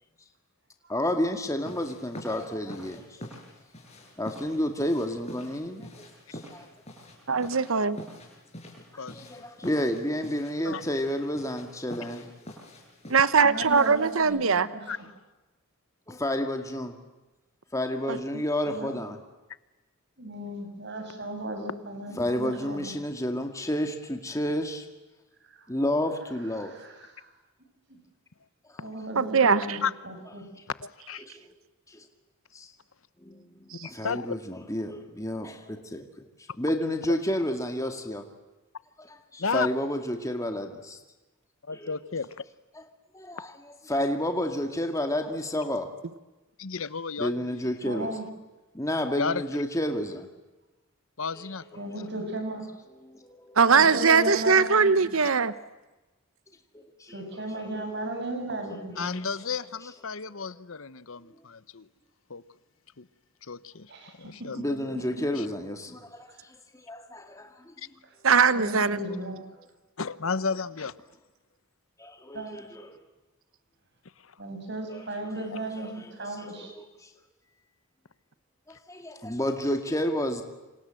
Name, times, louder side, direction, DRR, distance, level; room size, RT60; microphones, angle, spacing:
voice 1, 0.9-3.3 4.2-6.7 8.9-12.3 16.1-17.0 17.7-19.2 22.2-24.9 25.7-26.7 28.7-28.8 31.2-31.5 31.9-32.1 32.5-32.7 33.2-33.5 33.8-36.1 36.6-38.2 39.0-41.0 41.7-41.9 43.1-45.9 47.2-48.1 48.7-50.3 51.4-52.1 53.0-53.6 56.7-57.9 58.7-58.8 64.5-67.7 72.0-73.0 74.9-75.3 75.6-77.1 78.7-80.4, left 1 dB, 15° left, 2.2 m, -31 dB
sound 1, 1.6-14.2, equal, 30° left, 7.3 m, -46 dB
voice 2, 7.3-8.0 13.1-14.7 18.1-18.2 29.2-29.8 33.7-33.9 53.6-55.5 68.2-69.0, right 5 dB, 70° right, 1.0 m, -21 dB
voice 3, 13.4-15.0 18.7-19.0 20.2-22.9 25.5-25.7 26.6-27.3 27.9-28.0 28.8-29.8 30.0-30.4 47.9-48.3 51.8-52.6 53.8-55.2 57.1-59.2 63.9-64.5 68.5-69.4 72.3-72.7 74.4-76.7, right 1 dB, 55° right, 7.0 m, -35 dB
voice 4, 30.8-31.2 33.8-34.4 37.1-37.2 39.4-39.7 41.6-42.3 46.6-47.7 49.2-49.6 51.2-51.6 59.0-61.9 62.3-62.4 63.0-63.1 63.4-63.9 64.2-65.0 65.4-65.5 67.8-67.9 70.0-70.9 74.2-74.4, left 5 dB, 70° left, 1.0 m, -33 dB
28.0 x 26.5 x 7.7 m
head